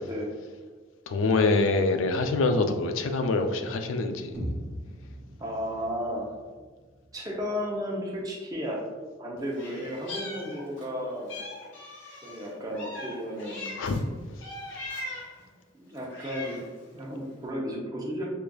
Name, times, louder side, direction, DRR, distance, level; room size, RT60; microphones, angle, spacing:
voice 1, 0.0-0.4 5.4-6.3 7.1-8.8 9.2-11.4 12.2-13.8 15.7-16.6 16.9-18.3, equal, 20° right, -3 dB, 0.6 m, -33 dB
voice 2, 1.1-4.3 13.8-14.0, left 3 dB, 85° left, 7 dB, 0.4 m, -25 dB
sound 1, 4.3-8.3, equal, ahead, 1.4 m, -41 dB
Meow, 9.5-10.9 11.3-14.0 14.4-15.4 16.0-16.8, left 2 dB, 70° left, 0.9 m, -40 dB
4.8 x 2.4 x 2.3 m, 1.4 s
head